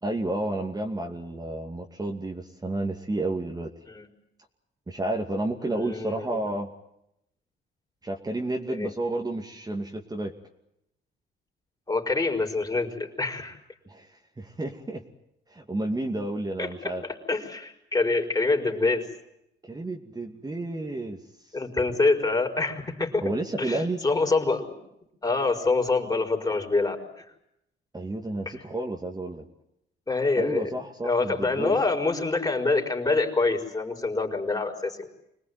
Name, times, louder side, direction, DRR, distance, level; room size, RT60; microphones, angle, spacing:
voice 1, 0.0-3.7 4.9-6.7 8.0-10.3 13.9-14.1 14.4-15.0 15.5-17.0 19.6-21.2 23.2-24.0 27.9-29.4 30.4-31.7, right 2 dB, 20° right, 2 dB, 2.4 m, -31 dB
voice 2, 5.6-6.5 8.7-8.9 11.9-13.6 16.6-19.1 21.5-23.2 23.6-24.7 25.2-27.2 28.4-28.5 30.1-30.7 31.0-35.1, left 3 dB, 20° left, 3 dB, 5.0 m, -26 dB
26.0 x 19.0 x 9.5 m, 0.80 s
cardioid pair, 90°, 20 cm